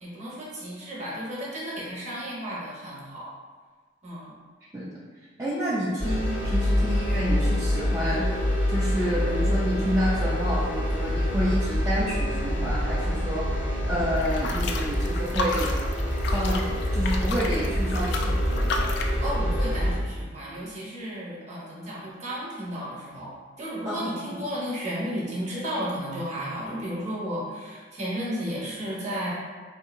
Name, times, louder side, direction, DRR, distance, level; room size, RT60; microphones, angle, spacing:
voice 1, 0.0-3.3 4.0-4.3 19.2-23.3 23.6-29.3, equal, 35° right, -5 dB, 0.8 m, -33 dB
voice 2, 5.4-8.2 8.7-13.5 13.9-15.8 16.3-16.6 16.9-18.7 23.8-24.4, equal, 15° right, -9 dB, 0.4 m, -29 dB
sound 1, 6.0-20.0, equal, 35° left, 0.8 m, -26 dB
sound 2, 14.2-19.2, left 3 dB, 60° left, 0.3 m, -32 dB
3.7 x 2.7 x 2.4 m, 1.5 s
head